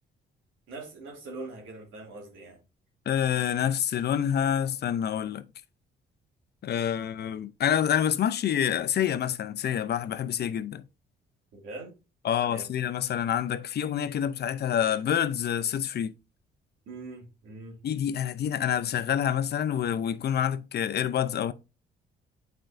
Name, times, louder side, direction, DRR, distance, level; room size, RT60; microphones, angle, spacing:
voice 1, 0.7-2.6 11.5-12.0 12.5-12.7 16.9-17.8, right 2 dB, 85° right, 2.4 m, -42 dB
voice 2, 3.1-5.5 6.6-10.8 12.2-16.1 17.8-21.5, left 9 dB, 55° left, 0.6 m, -27 dB
8.7 x 4.5 x 2.5 m
cardioid pair, 90°, 20 cm